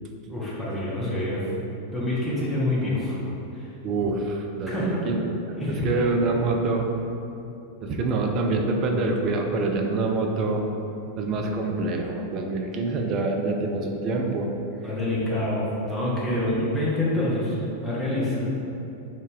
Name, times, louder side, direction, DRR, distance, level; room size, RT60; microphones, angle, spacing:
voice 1, 0.3-1.4 1.9-3.2 3.5-3.7 4.6-5.1 5.5-5.9 14.8-18.4, left 1 dB, ahead, -9 dB, 1.0 m, -27 dB
voice 2, 3.8-6.9 7.8-10.6 11.2-14.5 16.3-16.6, right 3 dB, 35° right, 2 dB, 0.5 m, -26 dB
3.6 x 2.8 x 4.6 m, 2.8 s
figure-of-eight pair, 90°, 0 cm